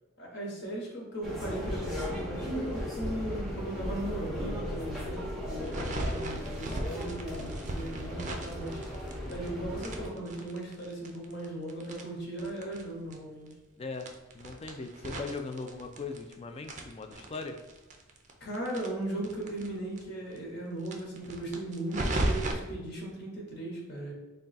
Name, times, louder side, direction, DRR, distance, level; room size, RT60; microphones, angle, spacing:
voice 1, 0.2-8.8 9.3-13.5 18.4-24.1, right 1 dB, 55° left, -2 dB, 1.1 m, -37 dB
sound 1, 1.2-10.1, equal, ahead, 0.7 m, -36 dB
sound 2, 5.6-9.5 9.8-12.8 13.1-13.2 13.5-13.6 14.0-16.3 16.6-19.7 20.0-20.1 20.3-20.4 20.8-22.5, right 1 dB, 35° right, 0.4 m, -36 dB
voice 2, 13.8-14.1 14.3-17.6, left 3 dB, 30° left, 5 dB, 0.3 m, -39 dB
3.6 x 2.3 x 4.0 m, 1.1 s
head